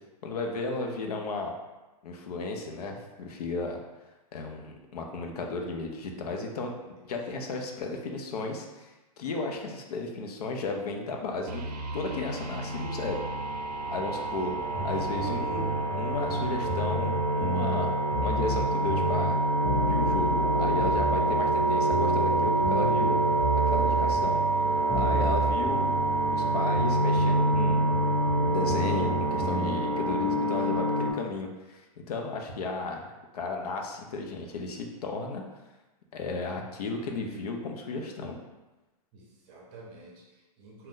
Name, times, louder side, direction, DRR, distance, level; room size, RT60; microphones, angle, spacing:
voice 1, 0.2-1.5 2.0-3.8 4.3-6.7 7.1-8.9 9.2-11.7 11.9-13.3 13.9-14.5 14.8-15.7 16.0-17.9 18.2-19.4 19.9-23.2 23.7-24.4 24.9-25.9 26.3-27.8 28.4-35.4 36.1-38.4, left 3 dB, 70° left, 2 dB, 0.5 m, -34 dB
sound 1, 11.5-31.1, right 1 dB, 80° right, 0.5 m, -27 dB
sound 2, 14.6-29.8, right 1 dB, 35° left, 0.9 m, -33 dB
voice 2, 39.1-40.9, right 2 dB, 30° right, -2 dB, 0.7 m, -51 dB
2.6 x 2.1 x 3.6 m, 1.1 s
hypercardioid pair, 140°, 20 cm